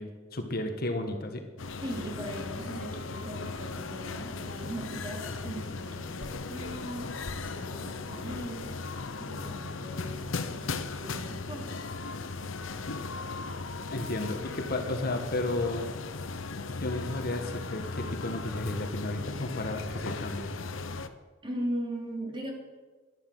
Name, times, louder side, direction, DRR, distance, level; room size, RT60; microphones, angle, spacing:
voice 1, 0.0-1.4 13.9-15.9 16.8-20.5, left 2 dB, 50° left, 5 dB, 1.5 m, -33 dB
sound 1, 1.6-21.1, left 3 dB, 80° left, 0.9 m, -37 dB
voice 2, 1.8-7.2 7.4-8.8 9.2-11.8 21.4-22.5, equal, 25° right, -1 dB, 3.3 m, -39 dB
11.5 x 11.5 x 7.8 m, 1.4 s
head